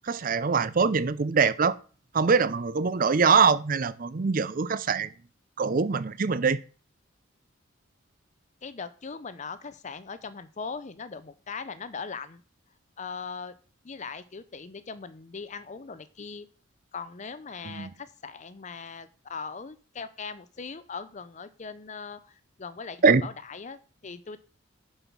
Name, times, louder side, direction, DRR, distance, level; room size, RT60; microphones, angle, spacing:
voice 1, 0.1-1.8 2.1-5.1 5.6-6.6 17.6-17.9 23.0-23.2, right 5 dB, 45° right, 0.5 m, -23 dB
voice 2, 8.6-12.4 13.0-13.5 13.8-16.5 16.9-24.4, left 5 dB, 35° left, 0.6 m, -40 dB
7.0 x 5.5 x 6.0 m
head